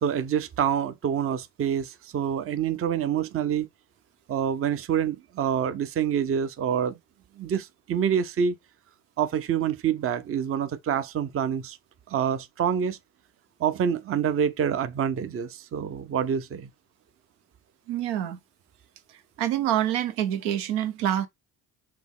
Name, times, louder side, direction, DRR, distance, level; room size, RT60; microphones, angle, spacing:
voice 1, 0.0-3.7 4.3-7.0 7.4-8.6 9.2-11.8 12.1-13.0 13.6-16.7, right 8 dB, 35° right, 0.6 m, -26 dB
voice 2, 17.9-18.4 19.1-21.3, right 11 dB, 85° right, 0.8 m, -27 dB
5.9 x 2.1 x 3.6 m
supercardioid pair, 75°, 40 cm